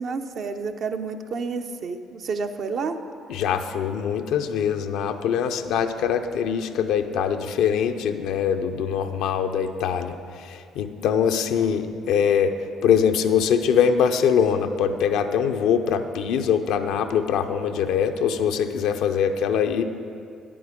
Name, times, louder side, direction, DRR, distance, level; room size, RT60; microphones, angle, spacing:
voice 1, 0.0-3.0, right 4 dB, 55° right, 6 dB, 0.6 m, -30 dB
voice 2, 3.3-12.5 12.8-19.8, left 7 dB, 70° left, 7 dB, 0.5 m, -23 dB
10.0 x 8.7 x 5.1 m, 2.4 s
hypercardioid pair, 50°, 0 cm